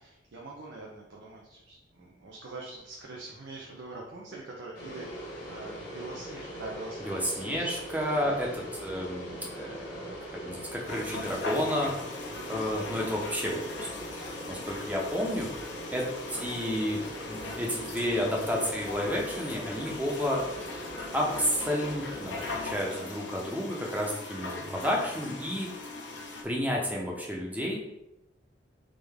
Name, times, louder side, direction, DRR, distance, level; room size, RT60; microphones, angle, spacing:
voice 1, 0.0-7.7 8.1-8.4 12.3-12.7 16.2-16.4 22.8-23.2, right 2 dB, 80° right, -3 dB, 0.7 m, -44 dB
sound 1, 4.7-22.7, equal, 60° left, 1.2 m, -41 dB
voice 2, 7.0-10.2 10.4-11.9 12.5-14.0 14.5-15.5 15.9-16.0 16.4-17.0 17.3-20.4 21.1-25.7 26.4-27.8, equal, 10° right, -2 dB, 0.8 m, -31 dB
sound 2, 10.9-26.4, left 3 dB, 85° left, 0.9 m, -40 dB
3.8 x 3.5 x 3.5 m, 0.89 s
head